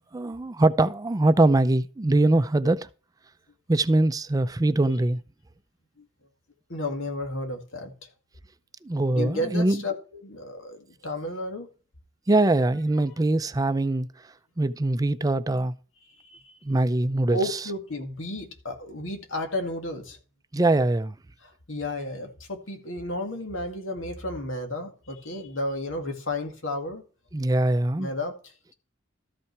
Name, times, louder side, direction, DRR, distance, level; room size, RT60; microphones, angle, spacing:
voice 1, 0.1-2.9 3.7-5.2 8.8-9.8 12.3-14.1 14.6-15.7 16.6-17.4 20.5-21.1 27.3-28.1, right 2 dB, 20° right, 0.4 m, -22 dB
voice 2, 6.7-7.9 9.1-11.7 16.2-16.5 17.3-20.2 21.4-27.0 28.0-28.3, left 1 dB, 85° left, 2.2 m, -32 dB
13.5 x 5.6 x 4.6 m
head